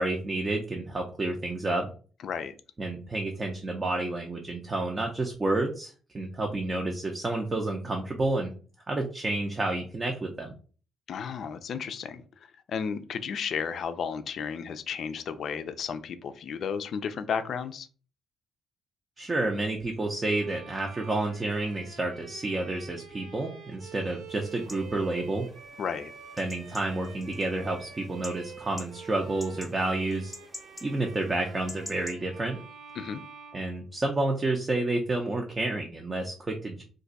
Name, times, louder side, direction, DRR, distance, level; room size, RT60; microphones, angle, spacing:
voice 1, 0.0-1.9 2.8-8.5 8.9-10.5 19.2-25.5 26.4-30.3 30.8-32.6 33.5-36.8, right 2 dB, 25° right, 1 dB, 0.6 m, -30 dB
voice 2, 2.2-2.5 11.1-12.2 12.7-17.9 25.8-26.1 33.0-33.2, left 6 dB, 60° left, 11 dB, 0.4 m, -33 dB
Bowed string instrument, 20.3-34.4, right 6 dB, 80° right, 0.6 m, -48 dB
sound 1, 24.3-32.1, left 1 dB, 5° left, 0.8 m, -48 dB
2.5 x 2.3 x 3.9 m, 0.39 s
cardioid pair, 90°, 0 cm